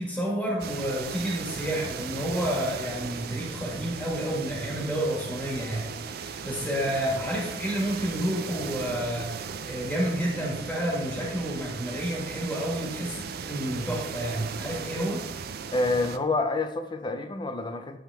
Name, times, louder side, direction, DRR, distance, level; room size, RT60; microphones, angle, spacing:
voice 1, 0.0-9.4 9.6-15.2, equal, 5° left, -4 dB, 1.6 m, -30 dB
sound 1, 0.6-16.2, right 6 dB, 60° right, 0.4 m, -37 dB
voice 2, 15.7-18.0, left 2 dB, 25° left, 7 dB, 0.5 m, -27 dB
10.0 x 3.7 x 3.4 m, 0.94 s
head